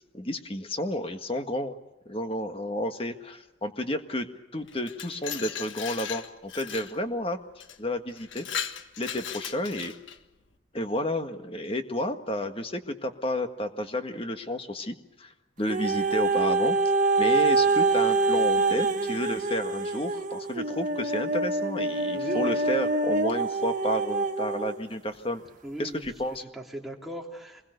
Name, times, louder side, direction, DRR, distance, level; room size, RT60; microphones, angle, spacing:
voice 1, 0.1-1.7 2.0-4.3 4.5-7.4 7.8-8.5 9.0-9.9 10.7-15.3 15.6-16.8 17.2-25.4 25.8-26.4, left 1 dB, 30° left, 7 dB, 1.7 m, -31 dB
Glass, 4.7-7.0 7.6-7.8 8.2-10.2, left 8 dB, 75° left, 1.5 m, -37 dB
sound 1, 15.7-24.8 25.5-25.6, right 3 dB, 40° right, 1.5 m, -25 dB
voice 2, 22.1-22.6 25.6-26.1 26.5-27.7, equal, ahead, -1 dB, 3.0 m, -38 dB
27.0 x 21.5 x 6.7 m, 1.0 s
head